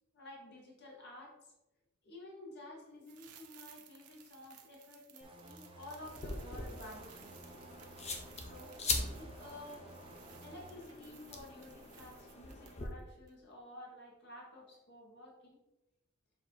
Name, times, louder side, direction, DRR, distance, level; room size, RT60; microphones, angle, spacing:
voice 1, 0.1-1.5 2.0-7.3 8.5-9.8 10.4-15.6, left 1 dB, 50° left, -3 dB, 1.5 m, -52 dB
sound 1, 3.0-13.0 13.3-13.4, right 9 dB, 90° right, 0.8 m, -60 dB
sound 2, 5.2-10.7, right 2 dB, 25° right, 0.7 m, -55 dB
sound 3, 6.0-12.9, left 3 dB, 30° left, 0.8 m, -42 dB
7.0 x 3.0 x 4.8 m, 0.96 s
head